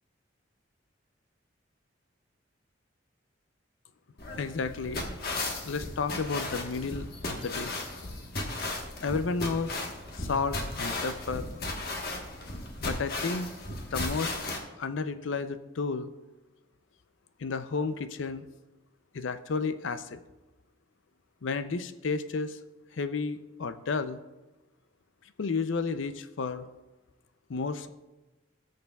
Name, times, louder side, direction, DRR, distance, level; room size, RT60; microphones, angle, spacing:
sound 1, 4.2-14.6, left 2 dB, 55° left, 1.3 m, -35 dB
voice 1, 4.4-5.1 5.6-7.9 9.0-9.8 10.2-11.5 12.8-13.5 13.9-14.3 14.8-16.1 17.4-18.4 19.1-20.2 21.4-22.6 22.9-24.2 25.4-26.7 27.5-27.9, left 4 dB, 80° left, 12 dB, 0.5 m, -32 dB
19.0 x 6.6 x 2.3 m, 1.1 s
head